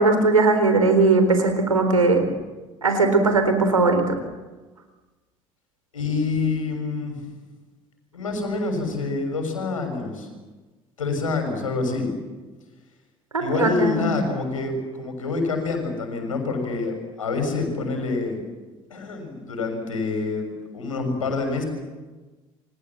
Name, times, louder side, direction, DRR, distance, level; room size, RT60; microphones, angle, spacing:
voice 1, 0.0-2.2 2.8-4.2 13.3-14.1, right 3 dB, 90° right, 7 dB, 4.1 m, -19 dB
voice 2, 5.9-7.3 8.1-10.3 11.0-12.1 13.4-18.4 18.9-21.6, left 3 dB, 85° left, 5 dB, 6.7 m, -27 dB
29.5 x 25.5 x 7.5 m, 1.2 s
figure-of-eight pair, 60°, 17 cm